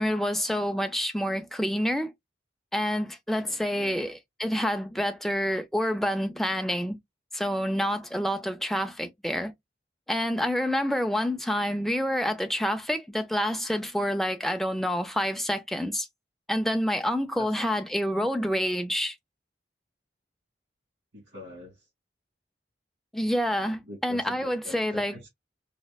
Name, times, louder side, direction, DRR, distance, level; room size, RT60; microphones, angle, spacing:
voice 1, 0.0-2.1 2.7-7.0 7.3-9.5 10.1-16.1 16.5-19.2 23.1-25.1, equal, ahead, 0.4 m, -28 dB
voice 2, 3.3-4.0 17.4-17.7 18.2-18.5 21.1-21.9 23.8-25.3, left 1 dB, 75° right, 2.7 m, -45 dB
5.1 x 2.1 x 2.3 m
head